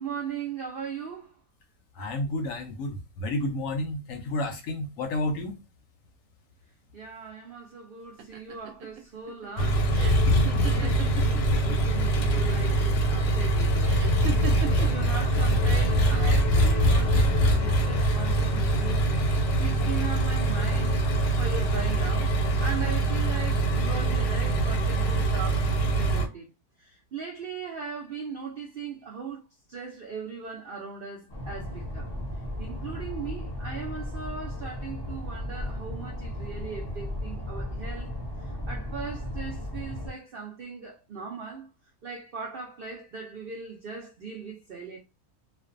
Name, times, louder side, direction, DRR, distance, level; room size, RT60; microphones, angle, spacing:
voice 1, 0.0-1.4 6.9-14.0 14.6-21.1 21.4-25.7 26.0-26.5 26.8-29.4 29.7-32.1 32.6-41.7 42.0-45.0, right 5 dB, 85° right, 0.4 m, -39 dB
voice 2, 2.0-5.5 10.2-10.5, left 1 dB, 70° left, 0.9 m, -31 dB
sound 1, 8.2-11.8 12.1-12.7 13.8-15.1 16.0-16.6, right 8 dB, 70° right, 0.8 m, -38 dB
Engine, 9.6-26.3, right 1 dB, 90° left, 1.1 m, -23 dB
sound 2, 31.3-40.1, left 1 dB, 30° left, 0.4 m, -35 dB
2.4 x 2.2 x 2.5 m
omnidirectional pair, 1.6 m